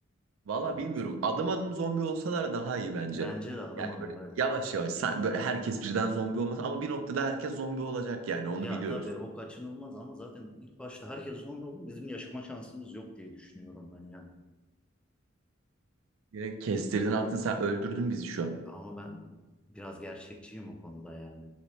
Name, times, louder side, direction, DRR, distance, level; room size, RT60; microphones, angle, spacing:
voice 1, 0.5-3.3 3.8-3.9 4.4-9.0 16.3-18.6, right 4 dB, 85° right, 6 dB, 0.4 m, -31 dB
voice 2, 3.1-4.4 8.6-14.3 18.7-19.4 19.7-21.5, left 1 dB, 5° left, 2 dB, 0.3 m, -42 dB
3.2 x 2.8 x 3.0 m, 1.1 s
head